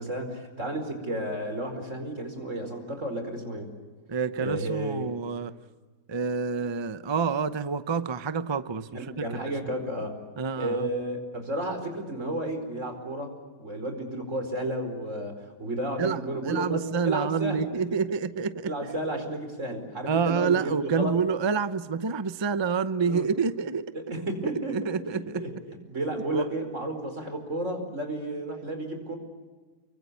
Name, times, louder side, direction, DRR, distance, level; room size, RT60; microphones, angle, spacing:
voice 1, 0.0-3.7 4.4-5.1 8.9-10.1 10.6-17.8 18.6-21.2 23.0-23.3 23.9-29.2, right 1 dB, 45° right, 5.0 m, -32 dB
voice 2, 4.1-5.6 6.1-8.9 9.2-9.3 10.4-10.9 16.0-16.2 16.4-18.7 20.1-23.9 24.7-25.4 26.3-26.5, right 5 dB, 25° right, 0.6 m, -28 dB
29.0 x 24.0 x 8.4 m
omnidirectional pair, 1.8 m